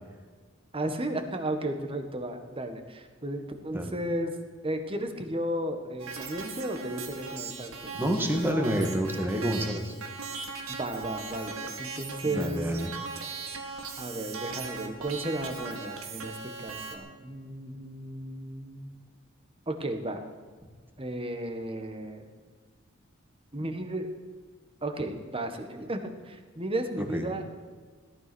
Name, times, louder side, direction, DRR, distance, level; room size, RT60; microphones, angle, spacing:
voice 1, 0.7-4.3 4.6-7.9 10.7-12.6 14.0-16.3 16.6-18.9 19.7-20.2 21.0-22.3 23.5-24.1 24.8-27.6, right 1 dB, 25° right, 6 dB, 1.6 m, -34 dB
sound 1, 6.0-16.9, right 4 dB, 85° right, 2.2 m, -39 dB
voice 2, 7.9-9.9 12.2-12.9 27.0-27.2, equal, 10° right, 3 dB, 2.0 m, -28 dB
17.5 x 12.5 x 6.3 m, 1.5 s
head